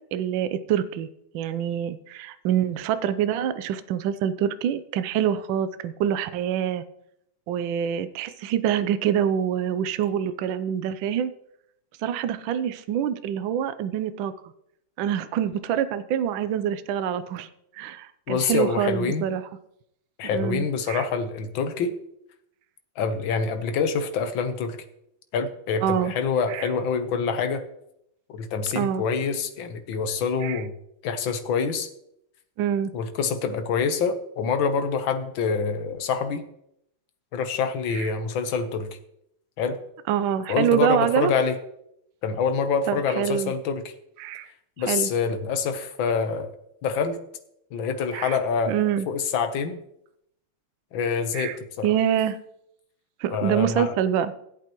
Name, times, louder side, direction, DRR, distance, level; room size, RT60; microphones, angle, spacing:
voice 1, 0.1-1.1 1.3-6.8 7.5-11.3 12.0-14.3 15.0-17.5 17.7-19.4 20.3-21.0 25.8-26.1 26.5-26.7 28.7-29.0 30.4-30.6 32.6-32.9 37.9-38.1 40.1-41.3 42.9-43.5 44.2-44.5 44.9-45.1 48.1-48.3 48.7-49.1 51.3-51.6 51.8-52.4 53.2-54.3, right 9 dB, 75° right, 12 dB, 1.3 m, -25 dB
voice 2, 18.3-19.3 20.2-21.9 23.0-24.8 25.3-27.7 28.3-30.7 31.0-31.9 32.9-36.5 37.3-39.0 39.6-39.8 40.5-41.6 42.2-43.9 44.8-46.5 46.8-47.2 47.7-49.8 50.9-51.9 53.3-54.0, left 5 dB, 70° left, 8 dB, 1.6 m, -26 dB
16.5 x 8.3 x 3.0 m, 0.76 s
omnidirectional pair, 2.3 m